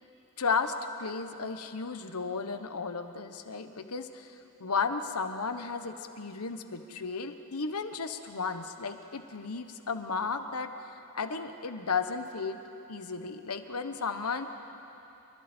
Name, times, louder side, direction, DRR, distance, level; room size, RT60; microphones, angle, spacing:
voice 1, 0.4-0.7 1.0-4.3 4.6-10.7 11.1-12.6 12.9-14.5, left 5 dB, 90° left, 8 dB, 1.2 m, -34 dB
29.0 x 24.0 x 4.5 m, 3.0 s
head